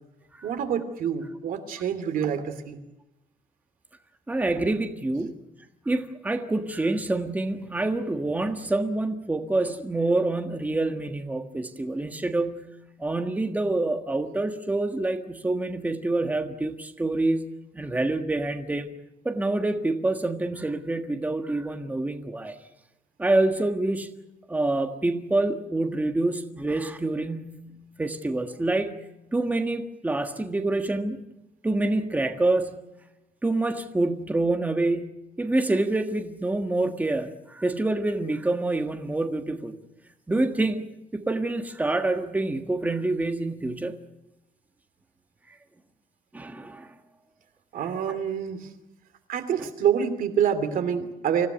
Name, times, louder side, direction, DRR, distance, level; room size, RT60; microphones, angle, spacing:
voice 1, 0.4-2.8 47.7-48.7 49.3-51.5, right 8 dB, 80° right, 2.8 m, -27 dB
voice 2, 4.3-5.4 5.8-12.7 13.0-17.5 17.7-18.9 19.2-22.6 23.2-24.1 24.5-27.7 28.0-29.0 29.3-31.2 31.6-32.8 33.4-35.1 35.4-39.8 40.3-40.8 41.1-44.0 46.3-46.9 48.1-48.2 49.6-49.7, right 2 dB, 10° right, 1.5 m, -27 dB
26.0 x 16.5 x 9.2 m
cardioid pair, 150°, 14 cm